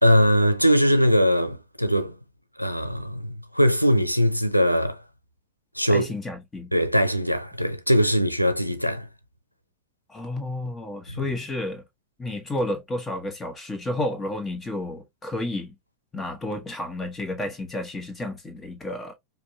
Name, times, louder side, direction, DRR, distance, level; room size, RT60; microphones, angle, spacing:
voice 1, 0.0-2.1 2.6-5.0 5.7-6.1 6.7-9.1 11.1-11.3, equal, 90° right, 0.5 m, -21 dB
voice 2, 5.9-6.7 10.1-11.8 12.2-15.7 16.1-19.1, left 1 dB, 15° left, 1.3 m, -31 dB
5.0 x 2.2 x 2.8 m
figure-of-eight pair, 90°, 0 cm